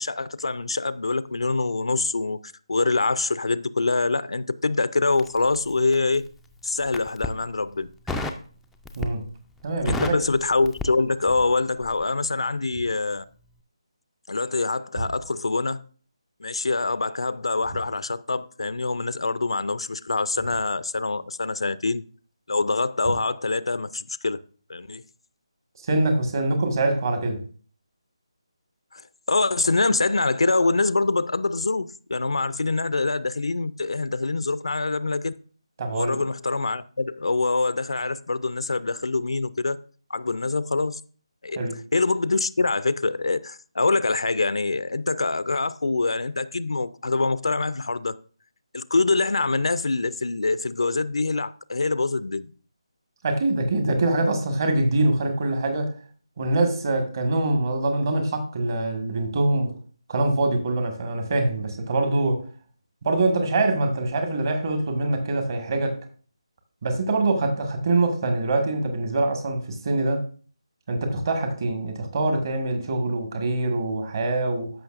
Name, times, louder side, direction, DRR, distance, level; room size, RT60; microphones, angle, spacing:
voice 1, 0.0-6.3 6.6-7.9 9.8-13.2 14.3-15.8 16.4-22.0 22.5-24.4 24.7-25.0 28.9-29.0 29.3-35.3 35.9-39.8 40.1-41.0 41.4-41.6 41.9-48.1 48.7-52.5, left 3 dB, 65° left, 0.5 m, -25 dB
Crackle, 5.1-6.3 6.8-7.4 8.1-8.5 8.8-9.3 9.6-11.5 11.8-12.0, left 2 dB, ahead, 0.4 m, -32 dB
voice 2, 9.6-10.2 25.9-27.4 35.8-36.2 41.6-41.8 53.2-55.9 56.4-59.8 60.1-62.4 63.0-66.0 66.8-70.2 70.9-74.7, right 2 dB, 40° right, 1.7 m, -24 dB
14.0 x 5.7 x 2.5 m
figure-of-eight pair, 155°, 3 cm